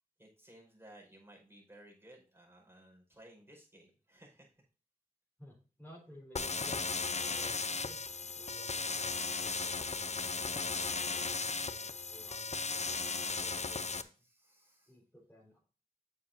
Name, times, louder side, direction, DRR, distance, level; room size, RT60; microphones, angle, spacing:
voice 1, 0.2-4.6 14.2-14.9, right 1 dB, 15° right, -1 dB, 5.0 m, -58 dB
voice 2, 5.4-9.6 9.8-12.4 13.2-14.1 14.9-15.6, equal, 10° left, -5 dB, 4.6 m, -57 dB
sound 1, 6.4-14.0, left 4 dB, 50° left, 0.7 m, -36 dB
9.0 x 7.4 x 2.7 m, 0.37 s
wide cardioid pair, 55°, 15 cm